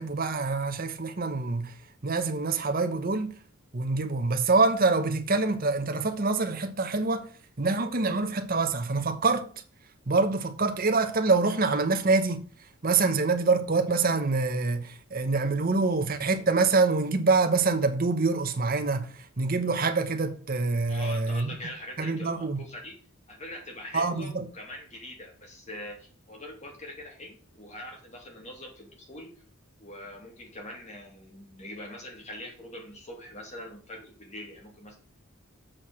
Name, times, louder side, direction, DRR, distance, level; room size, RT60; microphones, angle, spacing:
voice 1, 0.0-1.7 2.0-3.3 3.7-7.3 7.6-9.5 10.1-12.4 12.8-19.1 19.4-21.5 22.0-22.6 23.9-24.4, right 3 dB, 40° right, 1.0 m, -25 dB
voice 2, 20.9-23.0 23.3-29.3 29.8-35.0, left 1 dB, 30° left, 2.6 m, -43 dB
7.5 x 4.8 x 6.2 m
head